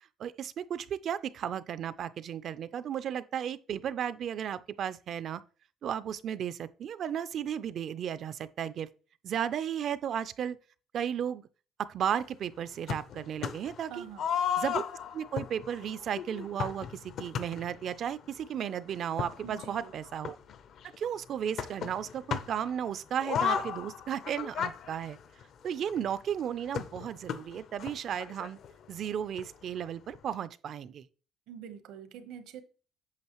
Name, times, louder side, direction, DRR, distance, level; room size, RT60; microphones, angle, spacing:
voice 1, 0.2-5.4 5.8-8.9 9.2-10.6 10.9-11.4 11.8-14.0 14.6-14.8 15.1-20.4 21.0-25.2 25.6-28.6 28.9-31.0, right 9 dB, 45° right, 0.4 m, -34 dB
sound 1, 12.9-13.8 14.2-17.9 18.7-18.8 19.0-21.0 21.6-22.7 23.2-26.0 26.7-28.7 29.0-29.1 29.4-29.5 30.1-30.2, left 8 dB, 50° left, 0.6 m, -35 dB
voice 2, 13.9-14.3 19.4-19.9 31.5-32.6, right 8 dB, 80° right, 1.0 m, -45 dB
8.6 x 6.2 x 3.0 m
cardioid pair, 155°, 0 cm